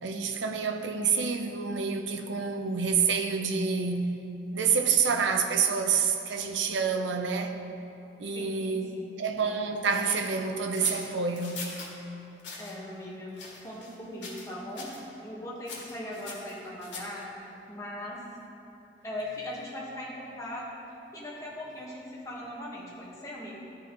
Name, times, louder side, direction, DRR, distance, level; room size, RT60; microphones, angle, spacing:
voice 1, 0.0-4.2 4.5-7.6 8.2-11.7, right 5 dB, 85° right, 0.6 m, -28 dB
voice 2, 8.3-9.2 12.6-14.9 15.2-17.3 17.7-18.2 19.0-20.6 21.1-23.5, left 1 dB, 15° left, 1.3 m, -39 dB
sound 1, 10.0-11.9 12.4-12.7 13.3-14.0 14.2-14.5 14.8-15.0 15.7-17.2, left 3 dB, 80° left, 1.8 m, -41 dB
14.0 x 4.7 x 3.0 m
head